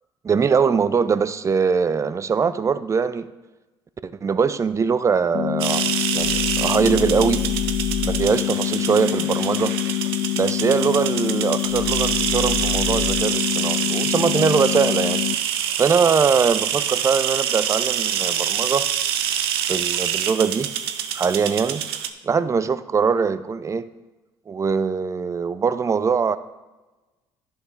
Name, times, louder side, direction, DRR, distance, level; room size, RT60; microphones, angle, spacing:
voice 1, 0.2-3.3 4.0-7.5 8.0-9.8 10.4-15.2 15.8-18.9 19.7-20.7 21.1-21.9 22.2-23.9 24.5-26.4, right 5 dB, 25° right, 14 dB, 0.4 m, -22 dB
sound 1, 5.3-15.3, left 20 dB, 45° left, 0.3 m, -25 dB
sound 2, 5.6-22.1, right 9 dB, 90° right, 0.5 m, -26 dB
sound 3, 6.1-8.3 11.6-13.2, left 2 dB, 70° left, 1.2 m, -31 dB
10.5 x 4.9 x 3.5 m, 1.1 s
hypercardioid pair, 65°, 12 cm